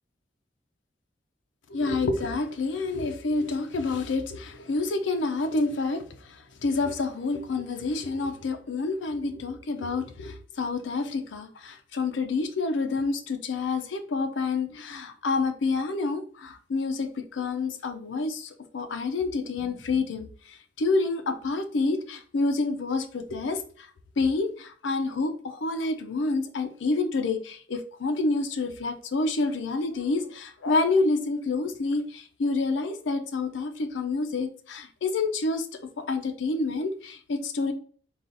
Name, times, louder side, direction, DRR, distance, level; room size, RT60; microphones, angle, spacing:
voice 1, 1.7-23.9 24.2-37.7, left 3 dB, 85° left, 0.5 m, -28 dB
4.0 x 2.4 x 3.8 m
head